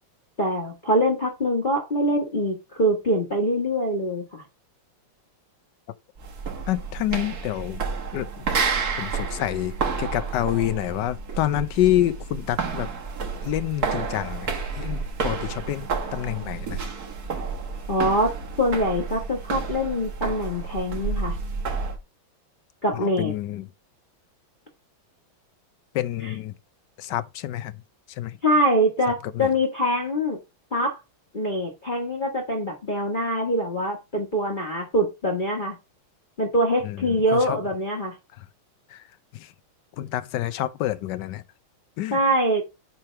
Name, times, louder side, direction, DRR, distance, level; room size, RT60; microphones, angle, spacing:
voice 1, 0.4-4.4 17.9-18.3 18.6-21.4 22.8-23.3 26.2-26.3 28.4-30.4 30.7-31.0 31.3-35.8 36.4-38.1 42.1-42.6, equal, 25° left, 1.3 m, -24 dB
sound 1, 6.2-22.0, right 5 dB, 50° right, 1.8 m, -30 dB
voice 2, 6.7-7.8 8.1-8.5 9.0-12.9 13.4-16.9 22.9-23.7 25.9-26.5 27.0-27.7 28.2-28.4 29.4-29.5 36.8-37.6 38.9-39.0 39.3-39.5 40.0-41.4 42.0-42.2, left 13 dB, 70° left, 1.1 m, -27 dB
7.7 x 3.4 x 5.7 m
omnidirectional pair, 2.3 m